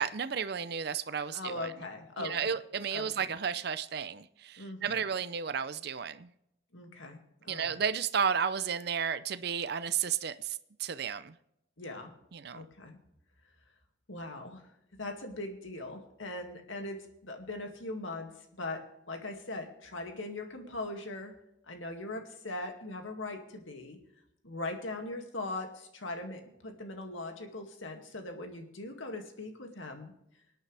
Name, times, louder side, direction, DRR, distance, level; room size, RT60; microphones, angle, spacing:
voice 1, 0.0-1.7 2.2-6.3 7.5-11.3 12.3-12.6, right 7 dB, 50° right, 13 dB, 0.5 m, -33 dB
voice 2, 1.3-2.5 2.9-3.1 4.6-5.0 6.7-7.2 7.4-7.8 11.8-12.1 12.5-13.0 14.1-14.6 15.0-18.3 18.6-18.8 19.1-21.3 21.7-24.0 24.4-30.1, left 2 dB, 75° left, 4 dB, 2.2 m, -40 dB
24.5 x 9.2 x 3.4 m, 0.80 s
head